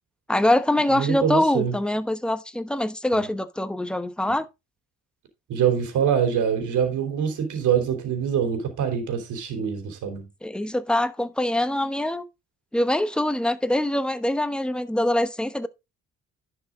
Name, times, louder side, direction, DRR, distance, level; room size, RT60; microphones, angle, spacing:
voice 1, 0.3-4.5 10.4-12.2 12.7-15.7, left 1 dB, 5° left, 1.0 m, -24 dB
voice 2, 0.9-1.7 5.5-10.2, right 8 dB, 80° right, 3.5 m, -24 dB
11.0 x 6.0 x 3.7 m
cardioid pair, 90°, 30 cm